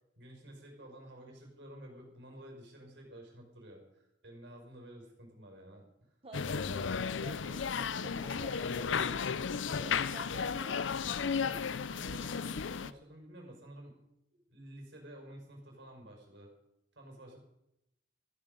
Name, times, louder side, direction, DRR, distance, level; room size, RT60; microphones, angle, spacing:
voice 1, 0.2-5.8 11.4-13.9 14.3-16.5 17.0-17.4, right 1 dB, 65° right, 1 dB, 5.6 m, -51 dB
voice 2, 6.2-10.8, right 3 dB, 30° right, 4 dB, 0.9 m, -51 dB
sound 1, 6.3-12.9, left 6 dB, 75° left, 0.6 m, -34 dB
14.5 x 14.5 x 5.3 m, 0.84 s
head